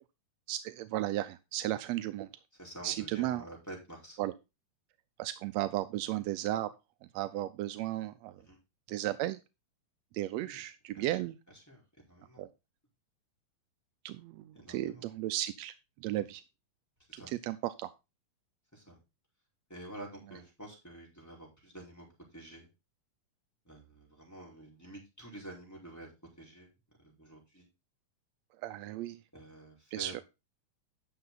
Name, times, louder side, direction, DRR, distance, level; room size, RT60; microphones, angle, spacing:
voice 1, 0.5-2.3 2.8-3.4 4.2-4.3 5.2-6.7 7.1-8.3 8.9-9.4 10.1-11.4 12.4-12.5 14.0-15.7 16.0-16.4 17.1-17.9 28.6-29.2 29.9-30.1, right 15 dB, 75° right, 12 dB, 1.6 m, -34 dB
voice 2, 2.5-4.2 8.3-8.6 10.4-10.6 10.9-11.8 12.1-12.5 14.5-15.1 17.1-17.3 18.7-19.0 19.7-22.1 22.3-22.7 23.6-26.1 26.4-26.7 27.0-27.7 29.3-30.2, right 1 dB, 5° left, -3 dB, 4.7 m, -49 dB
11.5 x 6.7 x 4.0 m, 0.26 s
omnidirectional pair, 3.6 m